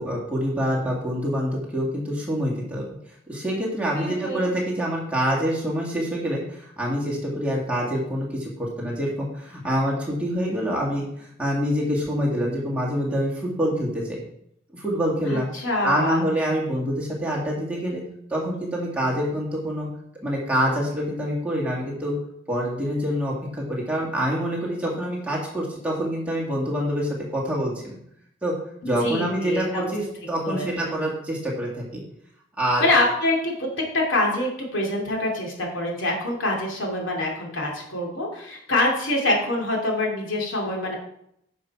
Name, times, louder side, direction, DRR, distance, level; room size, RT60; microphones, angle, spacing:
voice 1, 0.0-2.8 3.3-14.2 14.7-15.5 15.8-18.0 18.3-19.9 20.2-22.2 22.5-28.0 28.4-28.6 28.8-32.0 32.6-32.9, equal, 5° right, -4 dB, 2.2 m, -26 dB
voice 2, 3.9-4.5 15.3-16.2 28.8-29.8 30.4-31.0 32.8-33.7 33.9-40.9, left 1 dB, 75° left, -1 dB, 2.6 m, -25 dB
10.0 x 6.1 x 4.7 m, 0.73 s
head